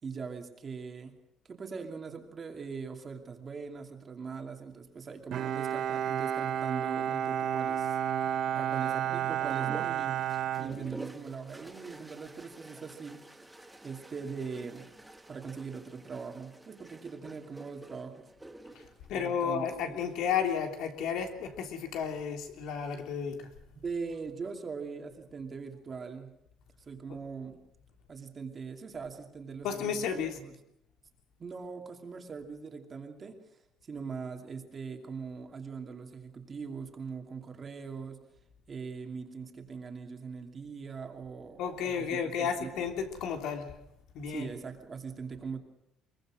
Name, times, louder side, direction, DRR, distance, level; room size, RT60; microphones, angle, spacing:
voice 1, 0.0-1.1 1.4-8.0 8.6-10.2 10.6-13.2 13.8-14.9 15.3-18.3 19.1-20.0 23.8-26.3 26.9-27.6 28.1-30.5 31.4-33.4 33.8-38.2 38.7-42.8 44.3-45.6, right 5 dB, 25° right, 4 dB, 2.7 m, -41 dB
Bowed string instrument, 5.3-11.5, right 9 dB, 50° right, 0.9 m, -32 dB
sound 1, 9.5-20.2 21.3-21.9, right 1 dB, 5° right, 1.4 m, -49 dB
voice 2, 19.1-23.5 27.1-27.2 29.6-30.4 41.6-43.7 44.1-44.5, left 7 dB, 70° left, 5 dB, 3.3 m, -33 dB
23.5 x 22.5 x 6.4 m, 0.79 s
cardioid pair, 150°, 0 cm